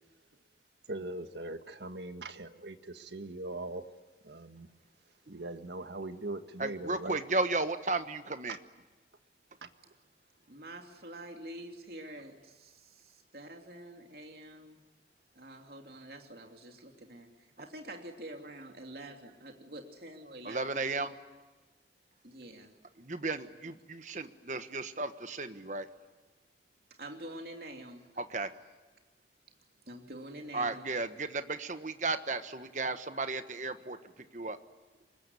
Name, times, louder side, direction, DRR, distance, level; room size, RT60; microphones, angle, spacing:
voice 1, 0.9-3.8 4.2-4.7 5.3-7.2 8.5-8.6 9.6-9.7, right 2 dB, 75° right, 8 dB, 1.6 m, -41 dB
voice 2, 6.6-8.6 20.4-21.1 23.0-25.9 28.2-28.5 30.5-34.0 34.3-34.6, right 3 dB, 45° right, 10 dB, 1.4 m, -34 dB
voice 3, 10.5-14.8 15.3-17.3 17.6-20.6 22.2-22.7 27.0-28.1 29.9-30.8, right 1 dB, 60° right, 3 dB, 2.9 m, -47 dB
25.0 x 21.5 x 9.8 m, 1.3 s
head